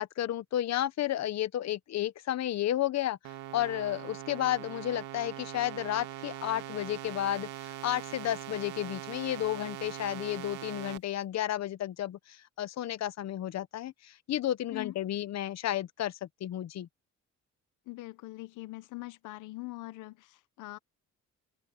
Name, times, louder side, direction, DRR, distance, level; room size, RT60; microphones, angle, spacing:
voice 1, 0.0-16.9, left 12 dB, 60° left, 0.9 m, -32 dB
sound 1, 3.2-11.0, right 13 dB, 85° right, 2.0 m, -42 dB
voice 2, 17.9-20.8, left 20 dB, 90° left, 0.9 m, -42 dB
open air
cardioid pair, 90°, 30 cm